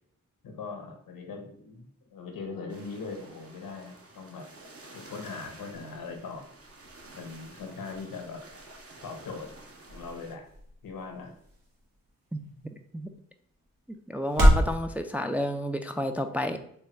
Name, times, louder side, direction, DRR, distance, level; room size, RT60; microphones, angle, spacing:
voice 1, 0.4-4.5 4.9-6.5 7.1-8.4 9.0-9.5 9.9-10.5 10.8-11.3, left 4 dB, 85° left, 4 dB, 0.8 m, -40 dB
sound 1, 2.7-10.4, right 2 dB, 45° right, 0.8 m, -51 dB
sound 2, 8.5-14.7, equal, 85° right, 1.1 m, -29 dB
voice 2, 14.1-16.6, equal, 5° right, 6 dB, 0.3 m, -30 dB
3.4 x 2.2 x 4.3 m, 0.68 s
cardioid pair, 40°, 34 cm